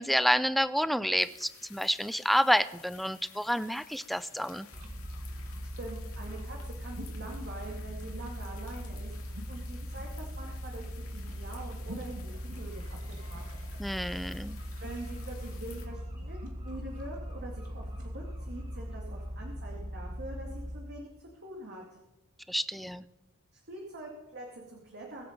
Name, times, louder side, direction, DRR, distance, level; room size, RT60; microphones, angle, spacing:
voice 1, 0.0-4.7 13.8-14.6 22.5-23.0, equal, ahead, 15 dB, 0.4 m, -29 dB
sound 1, 1.2-15.9, left 8 dB, 70° left, 2.6 m, -54 dB
sound 2, 3.5-18.2, equal, 90° right, 2.6 m, -53 dB
sound 3, 4.7-20.8, equal, 35° right, 4.3 m, -40 dB
voice 2, 5.6-13.5 14.8-21.8 23.7-25.2, right 2 dB, 50° right, -1 dB, 2.3 m, -44 dB
23.0 x 7.8 x 5.2 m, 0.98 s
head